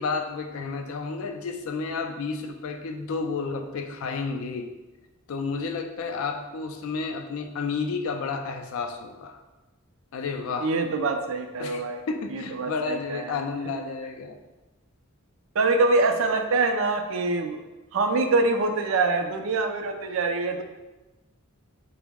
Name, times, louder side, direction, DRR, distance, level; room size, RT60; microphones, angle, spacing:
voice 1, 0.0-4.7 5.3-9.4 10.1-10.7 11.6-14.4, left 4 dB, 70° left, 6 dB, 0.3 m, -31 dB
voice 2, 10.6-12.0 12.3-13.3 15.6-17.6 17.9-20.6, right 3 dB, 65° right, 6 dB, 0.4 m, -24 dB
3.7 x 2.0 x 3.4 m, 1.1 s
head